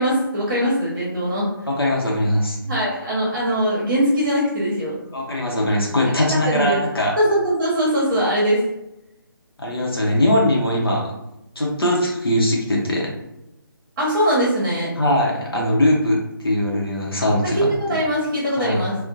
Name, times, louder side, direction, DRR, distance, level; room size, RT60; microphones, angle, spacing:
voice 1, 0.0-1.5 2.6-5.0 6.3-6.8 7.2-8.7 14.0-14.9 17.6-19.0, equal, 35° right, -5 dB, 0.8 m, -21 dB
voice 2, 1.7-2.6 5.1-7.2 9.6-11.1 11.6-13.1 15.0-16.2 16.4-17.6 18.6-18.8, left 1 dB, 80° left, -2 dB, 0.7 m, -20 dB
2.6 x 2.1 x 2.4 m, 0.90 s
figure-of-eight pair, 145°, 12 cm